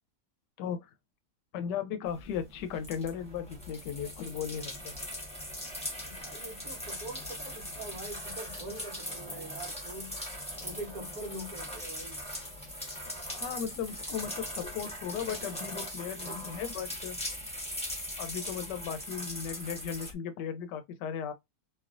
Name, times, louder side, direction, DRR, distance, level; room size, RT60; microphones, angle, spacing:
voice 1, 0.6-0.9 1.5-4.9 13.4-17.2 18.2-21.3, left 8 dB, 80° left, 1.2 m, -36 dB
sound 1, 2.1-20.1, left 1 dB, 5° left, 0.8 m, -40 dB
voice 2, 6.1-10.2 10.6-12.2 16.2-16.6, right 2 dB, 65° right, 1.2 m, -44 dB
3.1 x 2.7 x 2.4 m
omnidirectional pair, 1.9 m